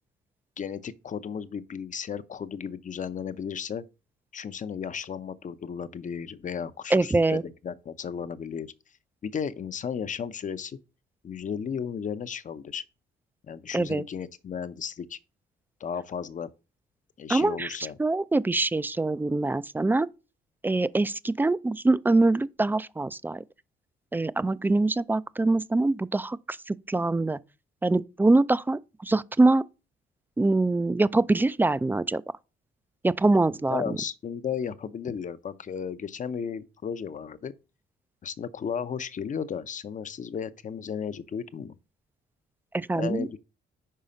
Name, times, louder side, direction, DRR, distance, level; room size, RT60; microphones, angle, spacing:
voice 1, 0.6-3.8 4.3-8.7 9.2-10.8 11.2-12.8 13.5-15.2 15.8-16.5 17.2-18.0 33.7-37.5 38.2-41.7 42.9-43.4, left 7 dB, 40° left, 0.6 m, -34 dB
voice 2, 6.9-7.4 13.7-14.0 17.3-17.7 18.0-20.1 20.6-23.4 24.1-27.4 27.8-29.6 30.4-32.2 33.0-34.0 42.7-43.4, right 2 dB, 10° right, 0.3 m, -24 dB
5.6 x 4.8 x 5.1 m
cardioid pair, 90°, 20 cm